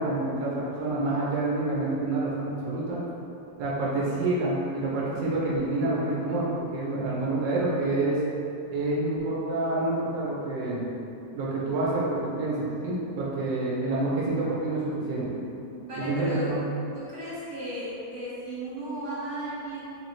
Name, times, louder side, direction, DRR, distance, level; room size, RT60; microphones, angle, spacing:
voice 1, 0.0-3.0 3.6-8.2 8.7-10.9 11.3-15.4 16.0-16.6, right 2 dB, 85° right, -6 dB, 1.3 m, -28 dB
voice 2, 15.8-16.5 16.9-19.8, right 1 dB, 45° right, -11 dB, 1.5 m, -35 dB
3.9 x 2.5 x 3.0 m, 2.8 s
omnidirectional pair, 1.9 m